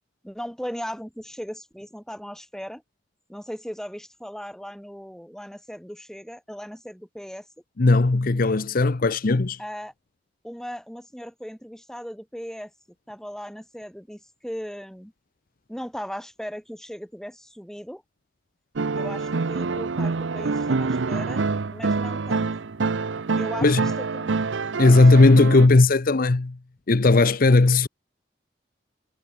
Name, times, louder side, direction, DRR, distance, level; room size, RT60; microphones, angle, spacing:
voice 1, 0.2-2.8 3.3-7.5 9.6-9.9 10.4-12.7 13.1-15.1 15.7-18.0 19.0-21.4 21.7-22.5 23.4-24.3 24.8-25.0, equal, 5° left, 7.9 m, -37 dB
voice 2, 7.8-9.6 23.6-23.8 24.8-26.6 26.9-27.9, left 3 dB, 50° left, 0.7 m, -17 dB
sound 1, 18.8-25.7, right 4 dB, 85° right, 0.7 m, -26 dB
head